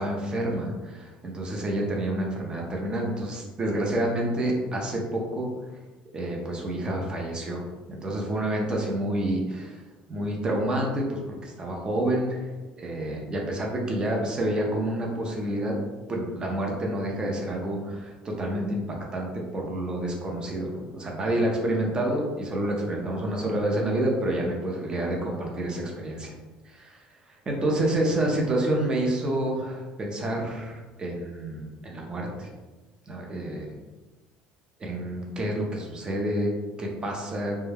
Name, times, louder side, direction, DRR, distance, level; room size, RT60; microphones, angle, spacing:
voice 1, 0.0-5.5 6.1-7.6 7.9-9.8 10.1-12.5 12.8-15.8 16.1-26.3 26.6-32.5 33.1-33.7 34.8-36.5 36.8-37.6, right 1 dB, 25° right, -1 dB, 0.7 m, -28 dB
2.2 x 2.2 x 3.3 m, 1.2 s
supercardioid pair, 100°, 3 cm